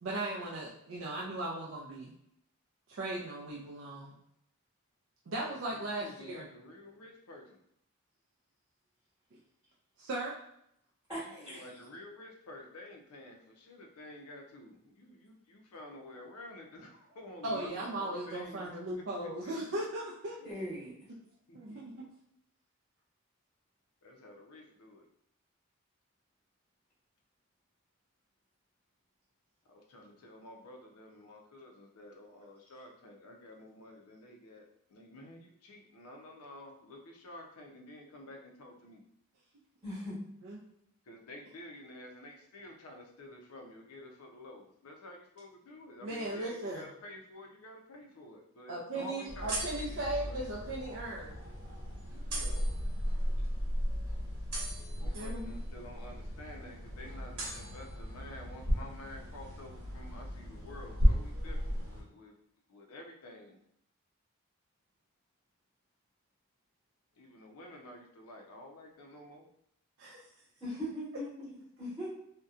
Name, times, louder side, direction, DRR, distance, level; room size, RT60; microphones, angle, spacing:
voice 1, 0.0-2.1 2.9-4.2 5.3-6.5 10.0-10.4 17.4-20.4 21.5-22.1 40.4-40.6 46.0-46.9 48.7-51.4 55.0-55.6 70.0-70.2, right 1 dB, 60° right, -4 dB, 0.4 m, -37 dB
voice 2, 5.5-7.6 11.3-19.8 20.4-20.7 21.5-22.0 24.0-25.1 29.7-39.0 41.0-49.5 49.9-50.4 52.1-52.6 55.0-62.3 62.7-63.6 67.2-69.5, left 1 dB, 85° left, 2 dB, 0.5 m, -50 dB
voice 3, 11.1-11.6 20.4-20.9 39.8-40.2 48.9-49.1 70.6-72.1, equal, 10° right, -10 dB, 0.9 m, -40 dB
sound 1, 49.3-62.0, equal, 85° right, 1.1 m, -34 dB
2.7 x 2.1 x 2.4 m, 0.73 s
head